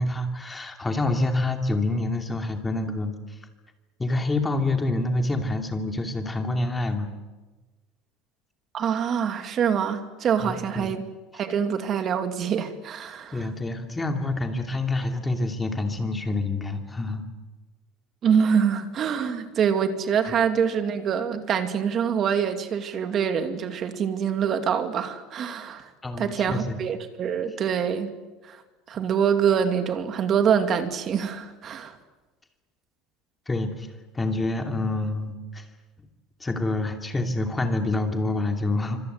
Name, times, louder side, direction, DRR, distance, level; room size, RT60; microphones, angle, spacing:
voice 1, 0.0-3.4 4.0-7.1 10.4-10.9 13.3-17.2 26.0-26.8 33.5-33.9 34.1-35.6 36.4-39.0, left 2 dB, 10° left, 5 dB, 2.7 m, -27 dB
voice 2, 8.7-11.0 11.3-13.5 18.2-25.9 26.2-28.1 28.4-28.6 28.9-31.9, right 7 dB, 35° right, 8 dB, 2.4 m, -25 dB
26.0 x 25.5 x 8.2 m, 1.2 s
cardioid pair, 155°, 0 cm